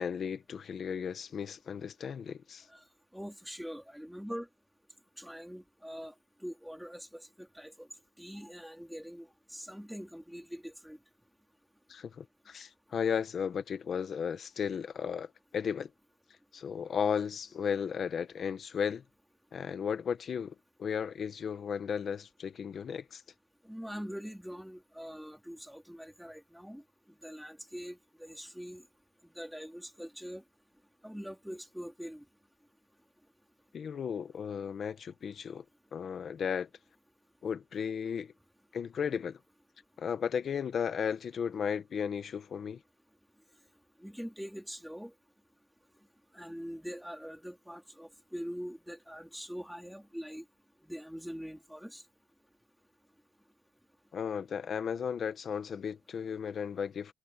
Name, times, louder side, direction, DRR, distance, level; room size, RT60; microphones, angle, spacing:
voice 1, 0.0-2.7 11.9-15.9 16.5-19.0 19.5-23.2 33.7-35.6 35.9-36.7 37.4-38.3 38.7-39.4 40.0-42.8 54.1-57.1, left 7 dB, 40° left, 1.4 m, -35 dB
voice 2, 3.1-4.5 5.2-6.1 6.4-7.9 8.2-11.0 23.6-26.8 27.2-28.9 29.4-30.4 31.0-32.2 44.0-45.1 46.3-50.4 50.8-52.0, equal, ahead, 3.8 m, -43 dB
cardioid pair, 165°, 0 cm